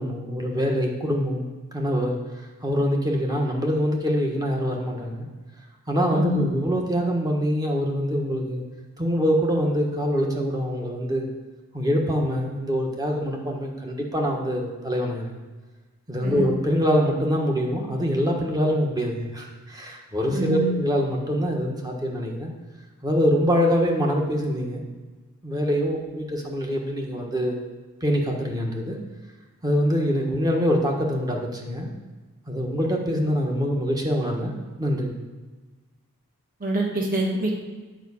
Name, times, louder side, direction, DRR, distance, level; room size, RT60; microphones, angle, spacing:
voice 1, 0.0-5.3 5.9-8.6 9.0-11.3 11.7-15.4 16.1-22.5 23.0-24.8 25.4-27.7 28.0-29.0 29.6-31.9 32.5-34.5 34.8-35.1, equal, 15° right, 1 dB, 1.3 m, -24 dB
voice 2, 6.1-6.4 16.2-16.4 20.3-20.7 36.6-37.6, right 1 dB, 40° right, -1 dB, 1.9 m, -25 dB
8.9 x 5.2 x 7.2 m, 1.3 s
head